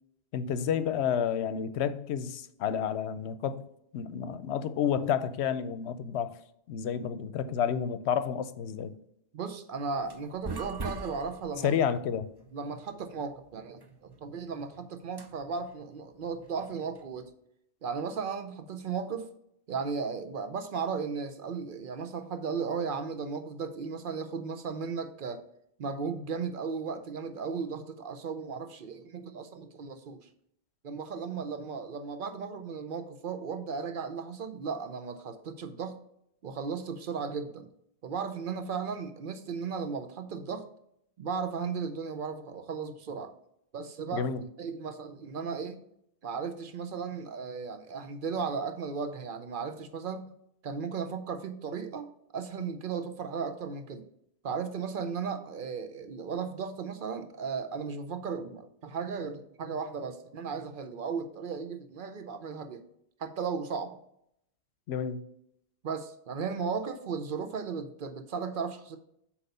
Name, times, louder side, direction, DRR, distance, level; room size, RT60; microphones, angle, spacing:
voice 1, 0.3-3.6 3.9-6.3 6.7-8.9 11.6-12.3 44.1-44.4 64.9-65.2, left 8 dB, 80° left, 0.8 m, -30 dB
voice 2, 9.3-11.8 12.5-17.3 17.8-19.3 19.7-25.4 25.8-30.2 30.8-36.0 36.4-37.7 38.0-40.7 41.2-43.3 43.7-44.3 44.6-45.8 46.2-50.3 50.6-54.1 54.4-62.8 63.2-64.0 65.8-69.0, right 5 dB, 55° right, 0.8 m, -35 dB
sound 1, 9.8-17.3, right 3 dB, 35° right, 0.4 m, -44 dB
7.9 x 3.0 x 5.3 m
omnidirectional pair, 1.1 m